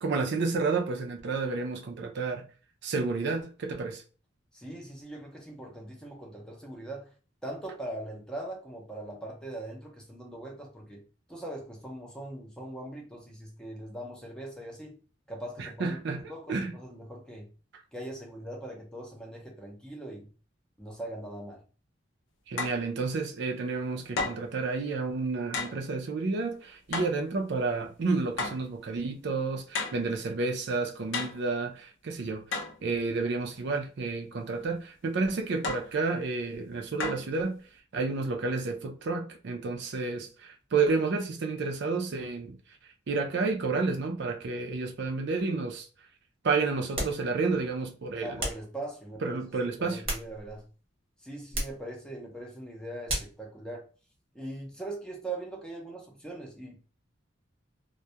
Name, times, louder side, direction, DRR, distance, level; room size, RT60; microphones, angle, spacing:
voice 1, 0.0-2.5 2.8-4.0 15.6-16.2 16.5-16.7 22.5-32.4 32.8-37.6 37.9-42.6 43.1-45.9 46.4-48.4 49.2-50.0, right 4 dB, 65° right, 0.4 m, -30 dB
voice 2, 4.5-7.1 7.4-11.0 11.3-15.0 15.3-17.5 17.9-20.3 20.8-21.6 48.2-49.4 49.8-50.7 51.2-53.9 54.3-56.8, right 1 dB, 5° left, 0.6 m, -41 dB
sound 1, 22.6-22.8 24.2-24.5 25.5-25.8 26.9-27.2 28.4-28.7 29.7-30.1 31.1-31.5 32.5-32.8 35.6-35.9 37.0-37.3, left 3 dB, 90° left, 0.5 m, -33 dB
sound 2, 46.9-47.3 48.4-48.7 49.8-50.7 51.5-51.8 53.1-53.4, right 1 dB, 30° right, 0.9 m, -34 dB
2.2 x 2.1 x 2.7 m
head